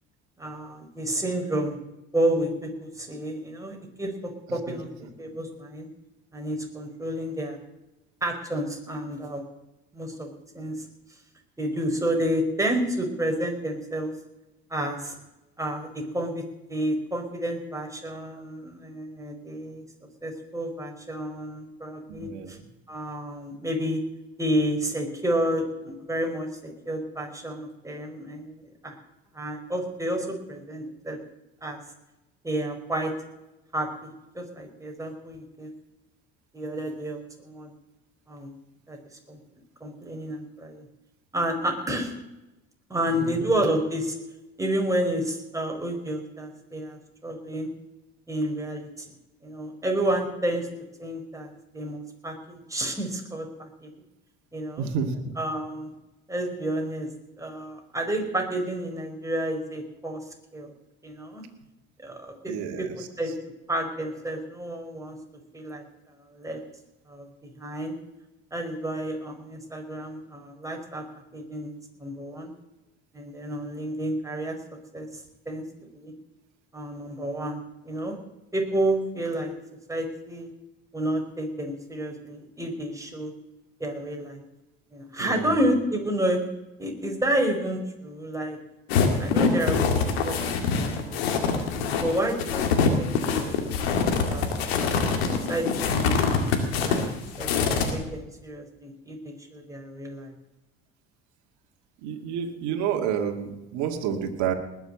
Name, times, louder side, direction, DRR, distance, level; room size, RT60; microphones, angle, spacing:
voice 1, 0.4-1.8 2.1-5.9 6.3-7.6 8.2-9.4 9.9-10.9 11.6-14.1 14.7-15.1 15.6-16.4 16.7-19.8 20.2-22.6 22.9-24.0 24.4-28.6 28.8-28.9 29.3-31.2 31.6-31.8 32.4-33.1 33.7-35.7 36.5-37.7 38.3-38.5 38.9-39.0 39.3-39.4 39.8-40.8 41.3-42.1 42.9-44.1 44.6-47.7 48.3-49.1 49.4-50.7 51.0-53.9 54.5-54.9 55.4-55.9 56.3-57.1 57.4-60.2 60.5-60.7 61.0-61.4 62.0-62.5 62.8-62.9 63.2-63.3 63.7-65.2 65.5-65.8 66.3-66.6 67.1-67.9 68.5-71.0 71.3-72.5 73.1-74.6 74.9-75.6 75.9-76.1 76.7-78.2 78.5-79.5 79.9-80.5 80.9-83.3 83.8-84.4 84.9-86.4 86.8-88.6 89.2-89.8 90.2-91.5 92.0-92.7 92.9-93.4 93.9-95.0 95.5-96.2 96.8-97.0 97.4-100.3, right 1 dB, 10° right, 2 dB, 4.9 m, -30 dB
voice 2, 22.1-22.6 43.2-43.3 54.8-55.2 62.5-63.1 85.2-85.6 102.0-104.5, right 7 dB, 70° right, 4 dB, 2.2 m, -29 dB
sound 1, 88.9-97.9, left 5 dB, 85° left, 2.2 m, -24 dB
20.0 x 7.1 x 7.6 m, 0.97 s
hypercardioid pair, 65°, 30 cm